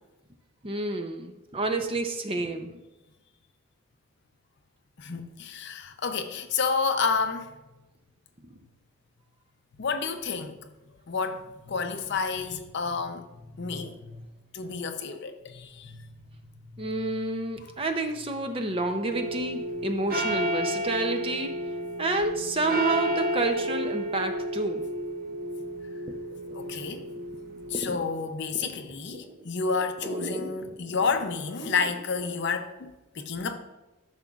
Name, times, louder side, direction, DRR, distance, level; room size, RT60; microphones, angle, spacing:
voice 1, 0.6-2.7 16.8-21.5 22.0-24.9 26.3-26.9 27.7-28.0 28.5-28.7 29.2-29.3 30.0-31.0 31.6-31.8, right 2 dB, 25° right, 0.5 m, -30 dB
voice 2, 5.0-7.5 9.8-10.6 11.1-13.3 13.5-14.3 14.5-17.0 26.5-27.0 27.7-33.6, left 5 dB, 55° left, 0.6 m, -30 dB
sound 1, 19.1-27.9, equal, 45° right, 0.9 m, -32 dB
12.5 x 5.8 x 2.4 m
head